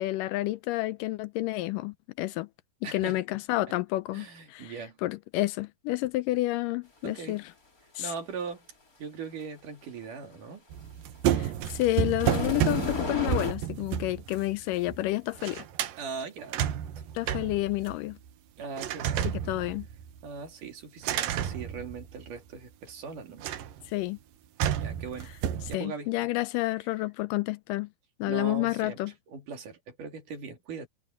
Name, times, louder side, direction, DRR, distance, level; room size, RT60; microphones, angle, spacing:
voice 1, 0.0-2.5 2.9-4.7 5.0-7.4 8.0-8.1 11.3-15.6 17.1-18.2 19.5-19.9 23.9-24.2 25.7-27.9 28.2-29.1, left 17 dB, 80° left, 2.1 m, -30 dB
voice 2, 2.8-3.2 3.7-3.8 4.1-5.0 7.0-7.4 8.0-8.6 9.0-10.6 16.0-17.1 18.6-19.3 20.2-23.5 24.8-25.3 25.7-26.1 28.2-29.0 29.3-30.9, right 5 dB, 65° right, 4.2 m, -40 dB
sound 1, 10.7-15.1 15.4-16.0 16.4-18.3 18.8-20.3 21.0-22.5 23.4-23.9 24.6-25.8, right 10 dB, 85° right, 2.9 m, -31 dB
sound 2, 11.7-13.5, left 3 dB, 25° left, 3.7 m, -32 dB
omnidirectional pair, 4.0 m